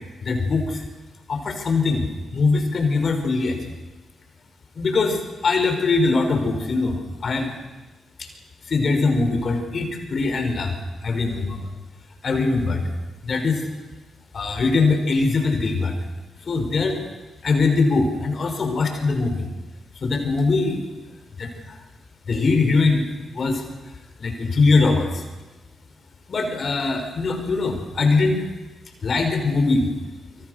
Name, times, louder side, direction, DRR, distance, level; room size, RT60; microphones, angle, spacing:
voice 1, 0.2-0.8 1.3-3.6 4.8-7.5 8.7-10.7 11.0-11.7 12.2-12.8 13.2-13.6 14.3-16.0 16.5-17.0 17.4-19.5 20.0-20.8 21.4-21.8 22.3-23.6 24.2-25.2 26.3-28.5 29.0-29.9, left 3 dB, 55° left, 5 dB, 5.8 m, -22 dB
26.5 x 25.0 x 6.8 m, 1.1 s
hypercardioid pair, 40°, 0 cm